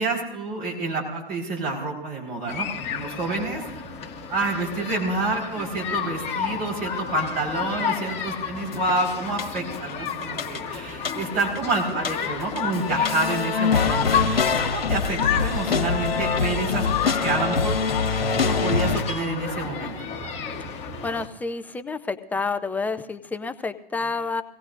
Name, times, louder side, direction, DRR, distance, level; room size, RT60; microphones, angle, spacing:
voice 1, 0.0-3.6 4.3-17.8 18.1-19.9, right 3 dB, 35° right, -1 dB, 4.6 m, -28 dB
sound 1, 2.5-21.3, left 7 dB, 20° left, 1.9 m, -31 dB
sound 2, 8.7-8.9 9.4-9.9 10.2-11.6 11.9-19.0, left 5 dB, 80° left, 1.7 m, -24 dB
voice 2, 21.0-24.4, left 4 dB, 5° left, 11 dB, 0.4 m, -29 dB
24.0 x 18.0 x 2.6 m, 0.88 s
hypercardioid pair, 115°, 29 cm